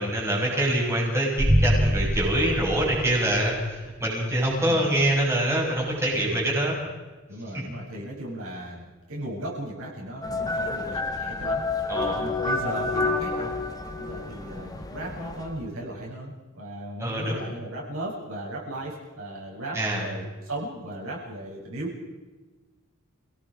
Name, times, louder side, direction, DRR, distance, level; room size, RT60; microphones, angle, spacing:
voice 1, 0.0-6.8 7.5-7.6 11.9-12.2 17.0-17.4 19.7-20.1, right 1 dB, 15° right, -4 dB, 6.6 m, -25 dB
sound 1, 1.4-3.6, equal, 30° right, 2.2 m, -24 dB
voice 2, 6.1-6.4 7.3-11.6 12.2-13.5 14.0-22.0, right 1 dB, 75° right, -5 dB, 7.7 m, -36 dB
sound 2, 10.2-15.7, left 3 dB, 20° left, 1.6 m, -29 dB
29.5 x 18.5 x 5.0 m, 1.3 s
head